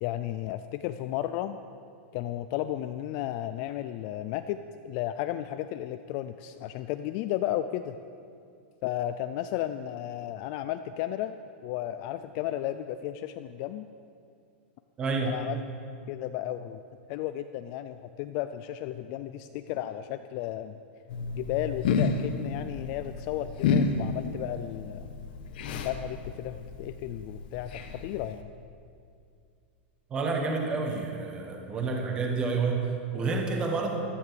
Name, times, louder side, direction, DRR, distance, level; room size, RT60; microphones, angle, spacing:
voice 1, 0.0-1.6 2.1-4.6 4.8-8.0 8.8-11.3 11.6-13.9 15.3-15.6 16.1-16.8 17.1-20.8 21.4-25.1 25.7-28.5, left 13 dB, 30° left, 10 dB, 0.4 m, -33 dB
voice 2, 15.0-15.4 30.1-33.9, right 4 dB, 15° right, 2 dB, 1.4 m, -29 dB
sound 1, 21.1-28.4, left 4 dB, 50° left, 1.3 m, -31 dB
15.5 x 12.5 x 6.8 m, 2.4 s
supercardioid pair, 180°, 7 cm